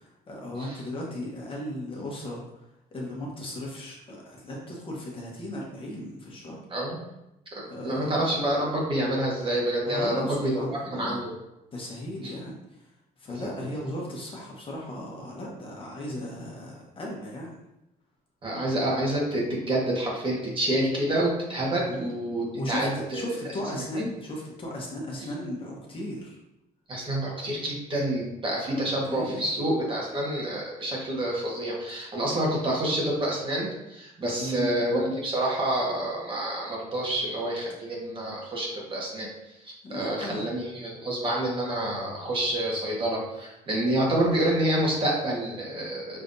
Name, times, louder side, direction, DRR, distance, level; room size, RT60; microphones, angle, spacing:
voice 1, 0.0-2.6 2.9-6.6 7.7-8.3 9.8-11.2 11.7-12.6 13.2-17.5 21.9-22.1 22.5-26.4 29.1-29.5 34.4-34.7 39.8-40.4, left 1 dB, 30° left, -2 dB, 1.1 m, -36 dB
voice 2, 6.7-7.0 7.8-10.5 10.9-11.3 12.2-12.3 18.4-23.2 23.7-24.1 26.9-39.3 39.6-46.2, right 1 dB, 30° right, -3 dB, 1.5 m, -28 dB
5.7 x 3.3 x 2.7 m, 0.91 s
cardioid pair, 110°, 17 cm